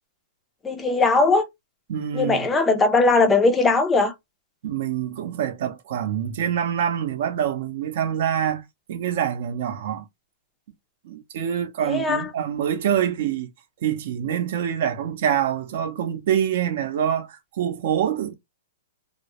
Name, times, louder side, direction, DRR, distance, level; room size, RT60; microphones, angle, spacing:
voice 1, 0.6-1.5 2.1-4.1 11.9-12.3, left 3 dB, 10° left, 0.4 m, -19 dB
voice 2, 1.9-2.5 4.6-8.6 8.9-10.1 11.0-13.5 13.8-18.3, right 9 dB, 55° right, 0.6 m, -25 dB
2.2 x 2.0 x 2.8 m
hypercardioid pair, 155°, 0 cm